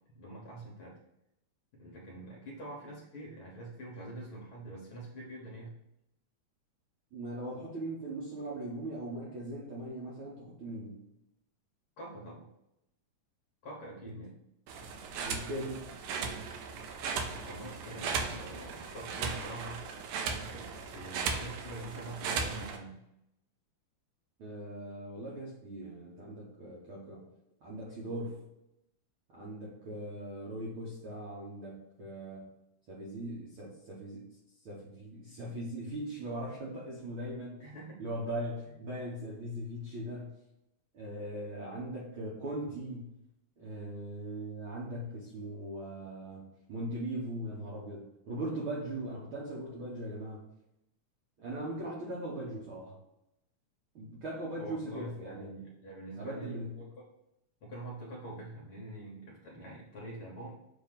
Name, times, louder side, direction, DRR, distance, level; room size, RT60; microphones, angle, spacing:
voice 1, 0.1-0.9 1.7-5.8 12.0-12.5 13.6-14.3 17.4-19.8 20.5-23.0 37.6-38.0 54.6-56.8 57.6-60.6, right 1 dB, 55° left, -3 dB, 1.7 m, -45 dB
voice 2, 7.1-11.0 14.1-14.2 15.2-15.9 24.4-27.3 27.6-28.4 29.3-32.5 32.9-34.3 34.6-37.6 38.0-40.3 40.9-43.2 43.6-50.5 51.4-53.0 53.9-55.6 56.2-56.9, right 1 dB, 60° right, -4 dB, 1.5 m, -40 dB
sound 1, 14.7-22.8, right 5 dB, 85° right, 2.3 m, -37 dB
7.0 x 2.9 x 5.7 m, 0.85 s
omnidirectional pair, 3.6 m